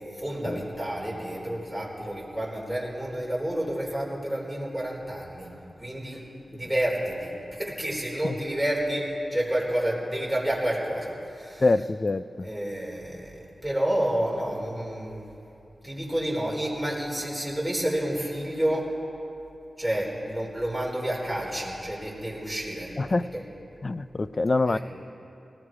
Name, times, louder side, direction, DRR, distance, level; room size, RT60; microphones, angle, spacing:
voice 1, 0.1-5.5 5.8-6.2 6.5-11.6 12.4-15.3 15.8-18.9 19.8-22.9 23.3-23.4 24.7-24.8, right 1 dB, ahead, -4 dB, 4.4 m, -29 dB
voice 2, 11.6-12.5 23.0-23.3 23.8-24.8, left 2 dB, 45° left, 14 dB, 0.4 m, -25 dB
19.0 x 15.0 x 5.0 m, 2.8 s
cardioid pair, 55°, 0 cm